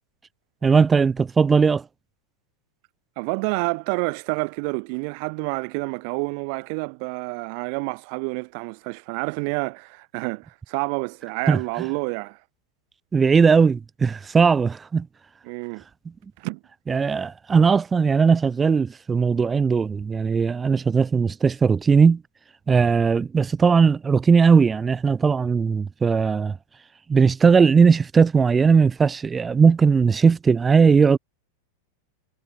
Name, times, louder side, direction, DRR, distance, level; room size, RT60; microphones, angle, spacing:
voice 1, 0.6-1.8 11.5-11.6 13.1-15.1 16.9-22.2 22.7-26.6 27.1-31.2, right 5 dB, 15° right, 2.0 m, -18 dB
voice 2, 3.2-12.4 15.5-15.8 16.4-16.6, right 39 dB, 45° right, 4.0 m, -28 dB
figure-of-eight pair, 90°, 0 cm